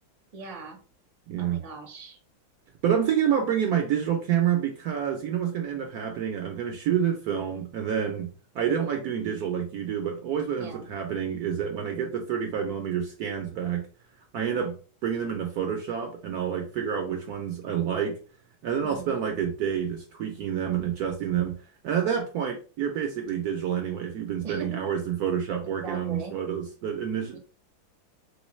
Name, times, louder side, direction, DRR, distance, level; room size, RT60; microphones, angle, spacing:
voice 1, 0.3-0.8 1.4-2.2 10.6-10.9 18.8-19.2 24.4-24.7 25.6-26.4 27.3-27.4, right 3 dB, 40° right, 2 dB, 0.5 m, -40 dB
voice 2, 1.3-1.6 2.8-13.9 14.3-14.8 15.0-18.2 18.6-21.6 21.8-27.4, right 8 dB, 70° right, 3 dB, 0.9 m, -28 dB
3.2 x 3.1 x 3.1 m, 0.37 s
omnidirectional pair, 2.1 m